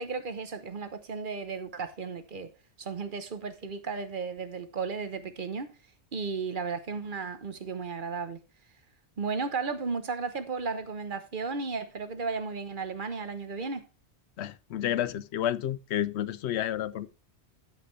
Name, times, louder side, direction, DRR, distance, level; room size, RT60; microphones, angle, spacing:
voice 1, 0.0-2.5 2.8-5.7 6.1-8.4 9.2-13.9, right 4 dB, 50° right, 1.1 m, -34 dB
voice 2, 14.4-17.1, left 11 dB, 75° left, 0.9 m, -30 dB
14.5 x 5.1 x 3.2 m
omnidirectional pair, 1.1 m